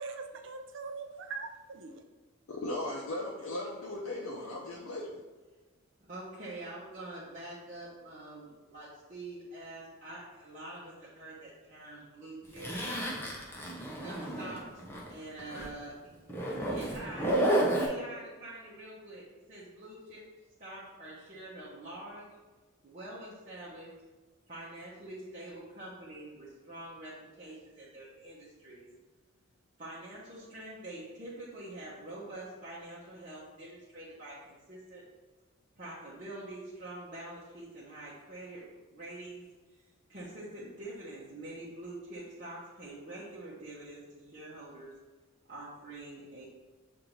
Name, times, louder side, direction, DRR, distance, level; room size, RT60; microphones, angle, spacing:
voice 1, 0.0-2.0, right 4 dB, 60° right, 6 dB, 0.4 m, -41 dB
voice 2, 2.5-5.1, left 1 dB, 70° left, -3 dB, 0.5 m, -37 dB
voice 3, 6.1-12.7 14.0-14.8 15.1-15.9 16.4-20.2 20.6-22.3 22.8-23.9 24.5-28.9 29.8-35.0 35.8-39.5 40.1-44.9 45.5-46.4, right 1 dB, 40° right, -9 dB, 0.8 m, -45 dB
Zipper (clothing), 12.6-15.1 15.4-15.7 16.3-17.9, right 1 dB, 10° left, 0.6 m, -31 dB
6.6 x 2.6 x 3.0 m, 1.3 s
head